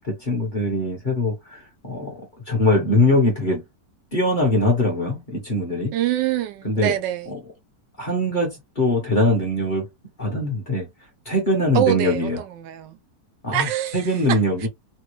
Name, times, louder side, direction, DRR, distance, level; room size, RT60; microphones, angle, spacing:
voice 1, 0.0-3.6 4.1-5.9 6.6-6.9 8.0-9.9 10.2-10.9 11.2-12.4 13.4-13.7 13.9-14.7, left 1 dB, 35° left, 1.0 m, -22 dB
voice 2, 5.9-7.3 11.7-13.0 13.5-14.7, right 11 dB, 85° right, 1.2 m, -25 dB
3.2 x 2.2 x 3.0 m
omnidirectional pair, 1.9 m